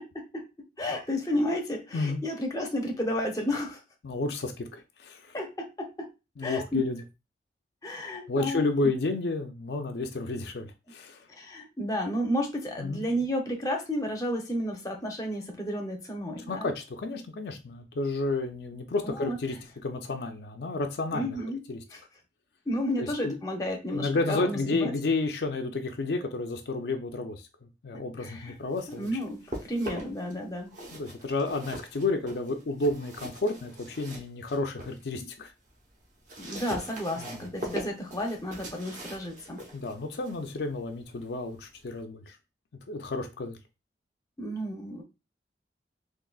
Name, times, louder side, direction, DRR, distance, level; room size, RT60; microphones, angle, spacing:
voice 1, 0.8-3.8 5.3-6.1 6.4-6.8 7.8-8.6 11.3-16.7 19.0-19.4 21.1-21.6 21.9-22.0 22.7-24.9 28.2-28.6 28.9-29.4 29.7-30.8 36.4-39.6 44.4-45.0, equal, 20° left, 0.6 m, -32 dB
voice 2, 4.0-5.4 6.4-7.0 8.3-11.3 12.8-13.0 16.5-19.6 19.8-21.4 21.7-21.8 23.0-23.4 23.9-29.2 30.9-35.5 36.4-36.6 37.2-37.5 39.7-42.4 42.9-43.6, left 3 dB, 70° left, 0.5 m, -31 dB
sound 1, 28.5-30.3 30.6-35.0 35.4-42.0, equal, 45° right, 0.9 m, -42 dB
3.8 x 2.5 x 2.3 m
head